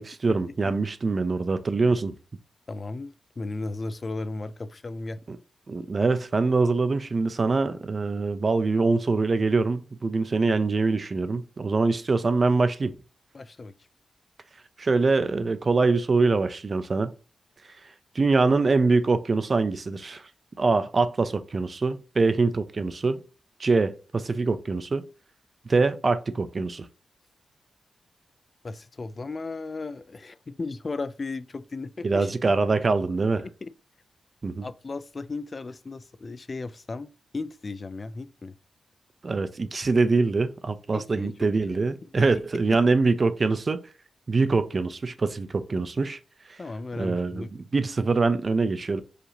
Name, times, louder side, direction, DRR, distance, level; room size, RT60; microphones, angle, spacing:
voice 1, 0.0-2.1 5.3-5.4 5.7-12.9 14.8-17.1 18.2-20.2 20.6-23.2 23.6-25.0 25.7-26.9 32.0-33.4 34.4-34.7 39.2-43.8 44.3-46.2 47.0-49.0, right 3 dB, 40° right, 0.4 m, -24 dB
voice 2, 2.7-5.2 13.3-13.7 28.6-32.3 33.4-33.7 34.6-38.6 40.9-42.1 42.3-42.8 46.6-47.5, left 3 dB, 35° left, 0.3 m, -36 dB
4.8 x 2.7 x 3.1 m
wide cardioid pair, 120°, 0 cm